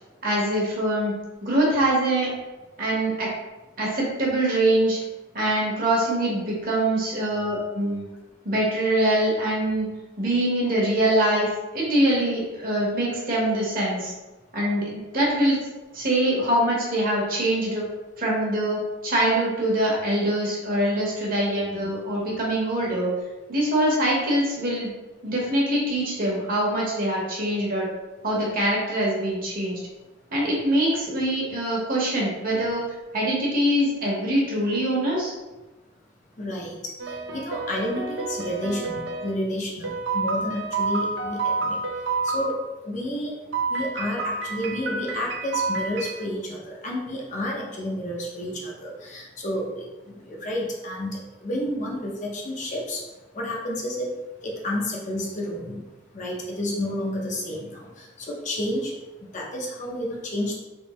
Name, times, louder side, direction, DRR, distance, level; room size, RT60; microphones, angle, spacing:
voice 1, 0.2-2.3 2.8-3.3 3.8-5.0 5.3-8.1 8.4-9.9 10.2-14.1 14.5-15.6 15.9-17.8 18.2-23.1 23.5-24.9 25.2-27.9 28.2-29.8 30.3-32.8 33.1-35.3, right 1 dB, 45° right, -3 dB, 1.1 m, -24 dB
voice 2, 36.4-36.8 37.1-41.8 42.2-42.6 42.8-43.4 43.7-53.0 53.3-54.1 54.4-55.8 56.1-58.9 59.3-60.5, left 1 dB, 40° left, -2 dB, 0.7 m, -30 dB
sound 1, 37.0-39.3 39.8-42.5 43.5-46.2, right 4 dB, 65° right, 0.6 m, -29 dB
3.6 x 3.1 x 3.0 m, 1.1 s
head